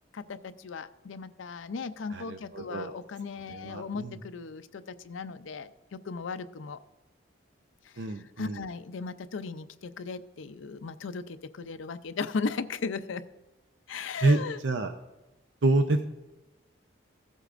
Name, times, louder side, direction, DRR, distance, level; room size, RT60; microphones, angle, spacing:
voice 1, 0.1-6.8 7.9-13.2 13.9-14.6, left 4 dB, 90° left, 12 dB, 0.5 m, -37 dB
voice 2, 2.1-2.9 3.5-4.2 8.0-8.7 14.2-14.9 15.6-16.0, right 2 dB, 70° right, 7 dB, 0.6 m, -27 dB
16.0 x 8.1 x 2.5 m, 1.0 s
head